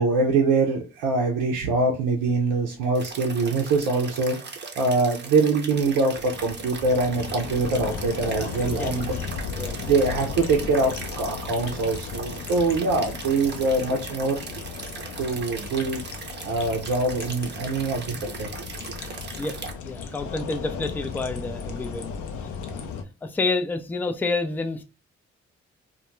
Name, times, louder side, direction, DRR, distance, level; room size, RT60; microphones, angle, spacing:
voice 1, 0.0-4.4 4.8-9.1 9.7-14.4 15.2-16.0 16.4-18.5, right 3 dB, 80° right, 0 dB, 0.5 m, -24 dB
sound 1, 2.9-19.7, right 5 dB, 35° right, 0.6 m, -38 dB
sound 2, 6.1-23.0, left 6 dB, 75° left, 0.5 m, -36 dB
voice 2, 8.8-9.8 19.4-19.6 19.8-22.1 22.7-22.9 23.2-24.8, left 3 dB, 5° left, 8 dB, 0.3 m, -29 dB
2.2 x 2.2 x 3.0 m, 0.30 s
hypercardioid pair, 45°, 31 cm